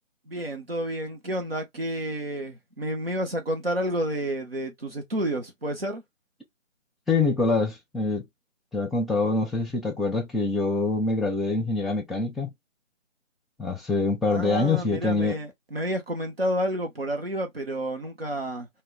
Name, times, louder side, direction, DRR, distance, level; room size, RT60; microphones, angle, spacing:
voice 1, 0.3-6.0 14.3-18.7, right 1 dB, 50° right, 0.7 m, -30 dB
voice 2, 7.1-8.2 8.7-12.5 13.6-15.4, left 3 dB, ahead, 0.4 m, -25 dB
2.1 x 2.0 x 3.6 m
figure-of-eight pair, 160°, 39 cm